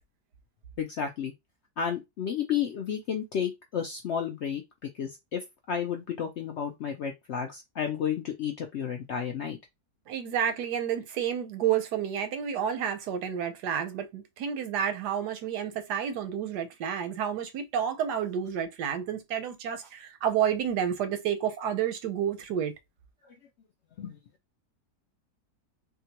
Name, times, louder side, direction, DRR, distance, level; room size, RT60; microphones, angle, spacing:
voice 1, 0.8-1.3 1.8-9.6 24.0-24.2, left 8 dB, 70° left, 0.6 m, -32 dB
voice 2, 10.1-22.7, right 9 dB, 90° right, 1.3 m, -30 dB
3.6 x 2.3 x 2.8 m
omnidirectional pair, 1.7 m